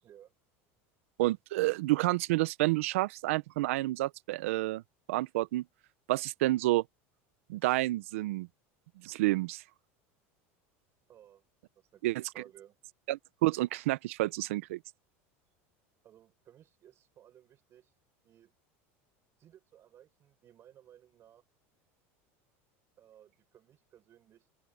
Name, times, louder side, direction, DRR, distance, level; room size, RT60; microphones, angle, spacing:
voice 1, 0.0-0.3 11.1-11.4 11.8-12.0 12.3-12.8 16.0-17.9 18.2-18.5 19.4-21.4 23.0-24.5, right 11 dB, 40° right, 5.7 m, -58 dB
voice 2, 1.2-4.8 5.1-5.6 6.1-6.8 7.5-8.5 9.0-9.6 12.0-12.2 13.1-14.8, right 18 dB, 85° right, 0.6 m, -29 dB
open air
supercardioid pair, 125°, 7 cm